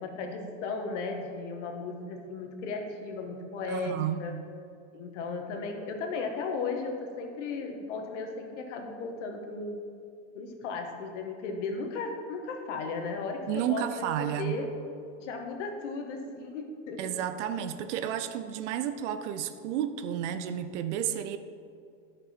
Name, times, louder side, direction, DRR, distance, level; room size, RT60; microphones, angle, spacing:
voice 1, 0.0-4.3 4.9-9.8 10.3-14.7 15.2-17.1, left 3 dB, 70° left, 3 dB, 1.4 m, -35 dB
voice 2, 3.7-4.3 13.5-14.6 17.0-21.4, right 10 dB, 70° right, 11 dB, 0.6 m, -32 dB
12.0 x 5.4 x 4.3 m, 2.4 s
supercardioid pair, 155°, 37 cm